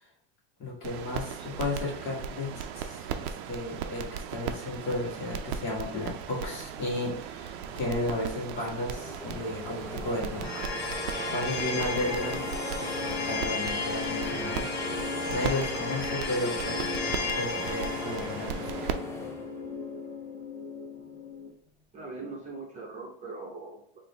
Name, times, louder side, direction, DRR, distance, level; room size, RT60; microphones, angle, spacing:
voice 1, 0.6-10.5 11.2-12.5 12.8-14.7 15.3-18.9, left 2 dB, 40° left, -2 dB, 1.6 m, -34 dB
sound 1, 0.8-18.9, right 8 dB, 70° right, 0.5 m, -38 dB
sound 2, 7.7-20.3 20.7-21.8, equal, 10° left, 0.6 m, -43 dB
sound 3, 10.4-21.5, left 4 dB, 55° left, 1.3 m, -34 dB
voice 2, 21.9-24.0, right 3 dB, 25° right, -2 dB, 1.0 m, -41 dB
3.8 x 2.7 x 3.3 m, 0.65 s
supercardioid pair, 120°, 32 cm